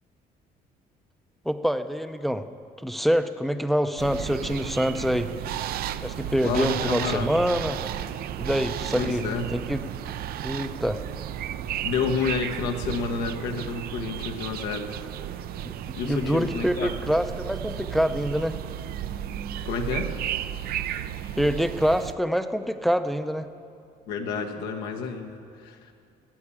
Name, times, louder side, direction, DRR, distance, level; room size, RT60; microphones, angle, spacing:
voice 1, 1.4-2.4 2.8-5.3 6.0-7.8 8.4-9.2 9.5-9.8 10.4-11.0 15.6-18.5 21.4-23.5, equal, ahead, 10 dB, 0.5 m, -25 dB
sound 1, 4.0-22.1, right 11 dB, 65° right, 0.5 m, -33 dB
voice 2, 6.4-7.4 9.0-9.5 11.8-15.0 15.9-16.9 19.6-20.1 24.1-25.9, left 5 dB, 90° left, 4 dB, 1.2 m, -30 dB
13.0 x 8.4 x 8.5 m, 2.4 s
cardioid pair, 110°, 17 cm